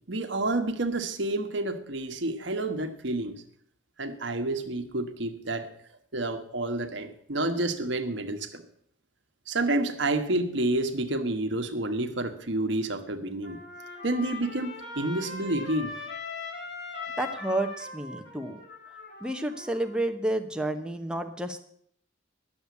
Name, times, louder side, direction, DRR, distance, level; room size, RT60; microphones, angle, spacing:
voice 1, 0.1-3.4 4.0-5.7 6.1-8.6 9.5-13.6 14.0-15.9, right 2 dB, 65° right, 6 dB, 1.2 m, -29 dB
Trumpet, 13.4-20.1, left 3 dB, 65° left, 4.1 m, -40 dB
voice 2, 17.2-18.6 19.2-21.6, right 1 dB, 5° right, 6 dB, 0.9 m, -30 dB
11.0 x 7.1 x 8.2 m, 0.65 s
head